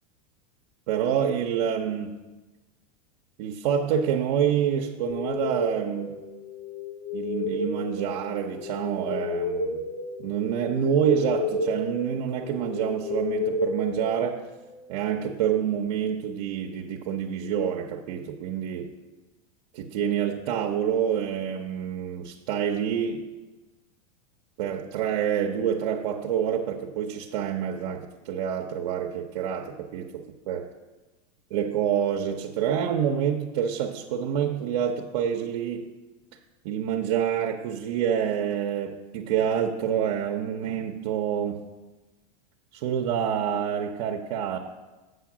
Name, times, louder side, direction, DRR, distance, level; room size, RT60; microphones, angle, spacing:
voice 1, 0.9-2.2 3.4-6.2 7.1-9.8 10.2-14.5 14.9-18.9 19.7-23.2 24.6-30.7 31.5-35.9 36.6-41.7 42.7-44.6, right 8 dB, 65° right, 2 dB, 0.7 m, -27 dB
sound 1, 5.1-14.8, left 3 dB, 75° left, 1.7 m, -32 dB
7.9 x 5.7 x 6.1 m, 1.2 s
supercardioid pair, 155°, 21 cm